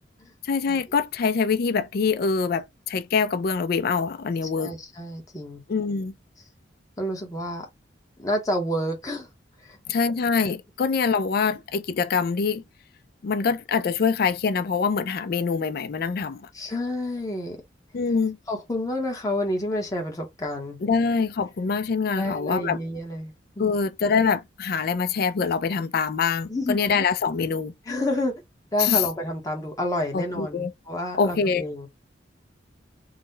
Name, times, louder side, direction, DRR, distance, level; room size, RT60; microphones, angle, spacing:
voice 1, 0.4-4.7 5.7-6.1 9.9-12.6 13.2-16.5 17.9-18.4 20.8-22.8 23.6-27.7 28.8-29.0 30.1-30.7 31.2-31.6, left 5 dB, 55° left, 0.4 m, -24 dB
voice 2, 4.6-5.6 7.0-7.7 8.2-9.3 9.6-9.8 16.5-17.6 18.5-20.9 22.1-23.8 26.5-26.8 27.8-28.3 28.7-31.9, left 1 dB, 20° left, 0.8 m, -29 dB
3.9 x 2.1 x 3.9 m
head